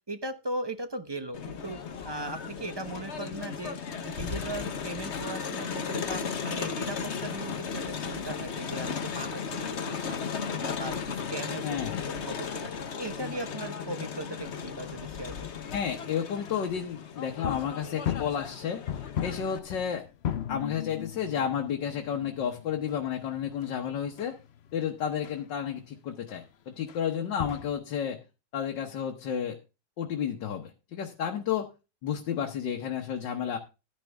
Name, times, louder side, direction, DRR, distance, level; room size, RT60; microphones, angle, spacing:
voice 1, 0.1-1.8 2.0-3.8 4.0-10.2 10.5-15.3, right 2 dB, 25° right, 9 dB, 0.6 m, -38 dB
Crowd, 1.3-19.6, left 6 dB, 45° left, 1.1 m, -36 dB
voice 2, 11.6-12.0 15.7-18.8 19.2-20.0 20.5-24.4 24.7-28.2 28.5-29.6 30.0-31.7 32.0-33.6, left 8 dB, 85° left, 2 dB, 1.8 m, -31 dB
sound 1, 17.3-25.4 25.7-25.8 26.3-26.5 26.9-27.0 27.3-27.8, left 10 dB, 65° left, 0.6 m, -38 dB
12.5 x 10.0 x 3.4 m, 0.29 s
omnidirectional pair, 1.9 m